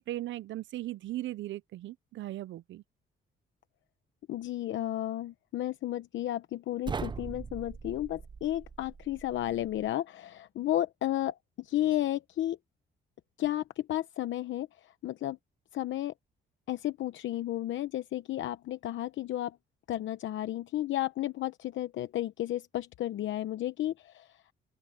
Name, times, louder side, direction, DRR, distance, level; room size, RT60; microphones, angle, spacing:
voice 1, 0.0-2.8, right 15 dB, 70° right, 0.5 m, -38 dB
voice 2, 4.3-12.6 13.4-15.4 15.7-16.1 16.7-19.6 19.9-24.4, left 13 dB, 70° left, 0.9 m, -33 dB
sound 1, 6.8-9.9, right 5 dB, 25° right, 0.5 m, -41 dB
open air
cardioid pair, 90°, 20 cm